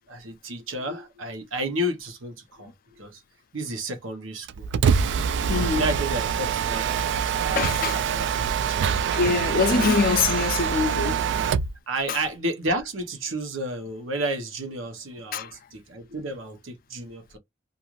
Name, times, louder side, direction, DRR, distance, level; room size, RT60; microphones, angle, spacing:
voice 1, 0.1-3.2 3.5-4.7 5.7-7.0 7.4-8.3 8.7-8.9 9.7-10.0 11.9-17.4, right 1 dB, 85° right, 0.9 m, -31 dB
Mechanisms, 4.5-11.8, right 7 dB, 65° right, 0.3 m, -25 dB
voice 2, 5.5-5.9 7.6-8.0 9.1-11.3 12.1-12.2 15.3-15.5, left 5 dB, 50° left, 0.4 m, -24 dB
2.5 x 2.5 x 2.9 m
head